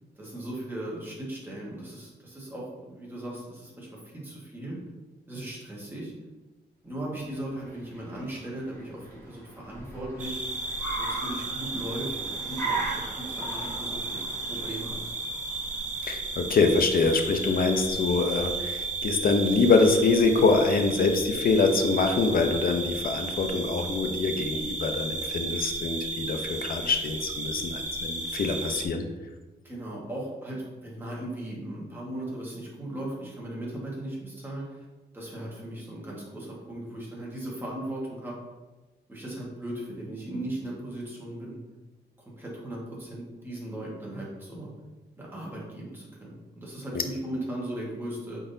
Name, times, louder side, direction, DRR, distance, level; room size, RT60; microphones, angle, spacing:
voice 1, 0.2-4.8 5.3-6.1 6.8-10.4 11.0-15.1 29.6-34.8 35.1-38.3 39.1-41.6 42.2-44.7 45.2-48.4, right 1 dB, 10° right, -5 dB, 1.4 m, -37 dB
Car, 7.3-17.5, right 3 dB, 15° left, 1.0 m, -39 dB
sound 1, 10.2-28.9, right 3 dB, 45° right, 0.5 m, -34 dB
voice 2, 16.0-29.0, left 4 dB, 55° left, 5 dB, 0.6 m, -24 dB
4.8 x 3.9 x 2.7 m, 1.2 s
wide cardioid pair, 130°, 17 cm